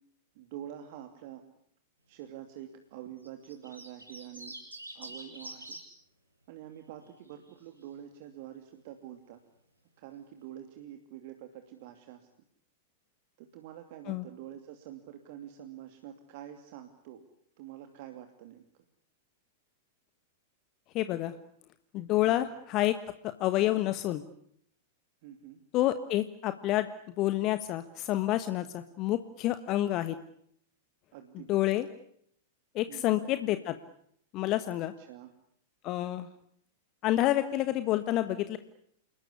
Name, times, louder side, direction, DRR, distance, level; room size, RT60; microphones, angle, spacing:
voice 1, 0.3-1.4 2.1-4.5 4.9-5.8 6.5-9.4 10.0-12.3 13.4-17.2 17.6-18.6 22.2-22.6 25.2-25.6 31.1-31.7 32.9-33.3 35.0-35.3, right 11 dB, 45° right, 6 dB, 2.7 m, -46 dB
sound 1, 3.2-5.8 7.1-7.5, right 1 dB, 85° right, 6.5 m, -45 dB
voice 2, 20.9-21.3 21.9-22.9 23.2-24.2 25.7-26.9 27.2-30.1 31.5-31.9 32.7-33.7 34.3-34.9 35.8-36.3 37.0-38.6, left 14 dB, 35° left, 11 dB, 1.5 m, -28 dB
29.0 x 20.5 x 9.9 m, 0.70 s
figure-of-eight pair, 95°, 0 cm